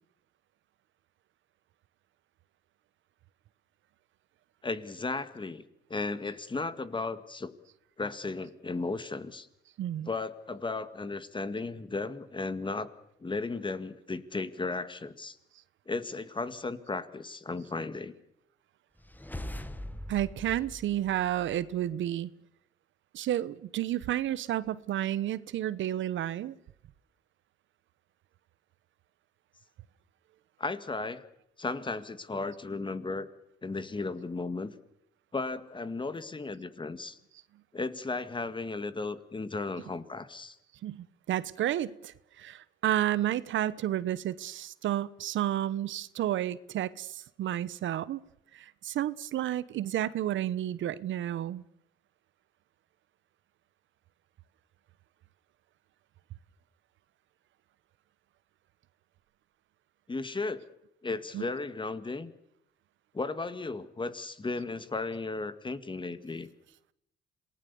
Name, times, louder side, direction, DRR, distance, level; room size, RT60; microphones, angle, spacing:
voice 1, 4.6-5.6 5.9-7.5 8.0-9.5 10.1-12.9 13.2-15.4 15.9-18.1 30.6-31.3 31.6-33.3 33.6-34.7 35.3-37.2 37.7-40.6 60.1-60.6 61.0-62.3 63.1-66.5, left 3 dB, 25° left, 12 dB, 2.0 m, -35 dB
voice 2, 9.8-10.1 20.1-22.3 23.1-26.5 40.8-48.2 48.5-51.6 61.3-61.5, right 12 dB, 75° right, 18 dB, 1.0 m, -31 dB
sound 1, 19.0-21.8, left 1 dB, 10° left, 1.5 m, -42 dB
27.0 x 19.5 x 7.0 m, 0.76 s
cardioid pair, 90°, 20 cm